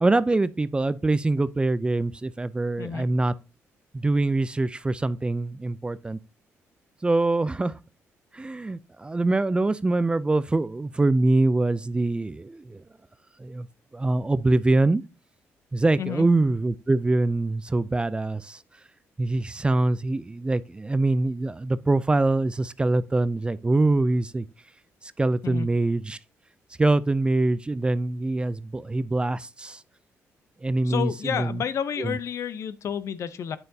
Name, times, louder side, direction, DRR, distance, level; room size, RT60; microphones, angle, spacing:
voice 1, 0.0-3.3 3.9-6.2 7.0-7.8 8.3-12.8 13.4-13.7 13.9-15.0 15.7-18.6 19.2-24.5 25.0-26.2 26.8-29.8 30.6-31.6 32.0-32.2, right 2 dB, 20° right, 0.4 m, -24 dB
voice 2, 30.8-33.6, left 8 dB, 60° left, 0.7 m, -30 dB
8.9 x 6.5 x 2.7 m
cardioid pair, 85°, 6 cm